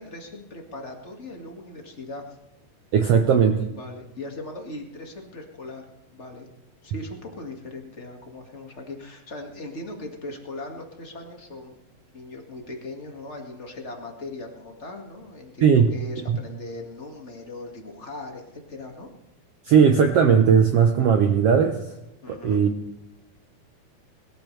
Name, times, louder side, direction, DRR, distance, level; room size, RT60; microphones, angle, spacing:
voice 1, 0.0-2.2 3.7-5.8 6.1-6.5 6.8-11.8 12.1-19.1 22.2-22.6, left 2 dB, 30° left, 2 dB, 1.4 m, -39 dB
voice 2, 2.9-3.6 15.6-15.9 16.3-16.4 19.7-21.8 22.3-22.7, right 7 dB, 85° right, 5 dB, 1.3 m, -18 dB
22.0 x 13.5 x 3.3 m, 0.96 s
omnidirectional pair, 4.1 m